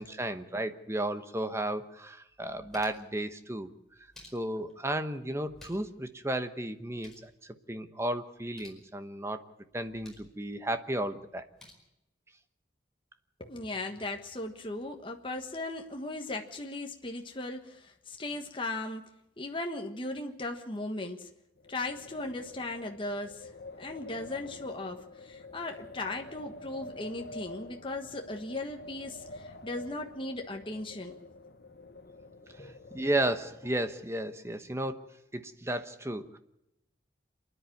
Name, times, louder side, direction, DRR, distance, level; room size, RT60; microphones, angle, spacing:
voice 1, 0.0-3.7 4.3-9.4 9.7-11.4 32.5-35.0 35.3-36.4, right 1 dB, 15° right, 9 dB, 1.1 m, -34 dB
sound 1, 2.3-3.2 3.9-4.7 5.4-6.0 6.3-6.4 6.7-7.3 8.4-8.8 9.7-10.3 11.3-11.7, left 1 dB, 5° left, 4.9 m, -55 dB
voice 2, 13.4-19.0 19.4-21.3 21.7-23.5 23.8-31.1 32.6-32.9, left 2 dB, 30° left, 3 dB, 1.4 m, -37 dB
Wind, 21.6-34.2, left 2 dB, 60° left, 1.2 m, -48 dB
28.0 x 10.0 x 9.2 m, 0.87 s
head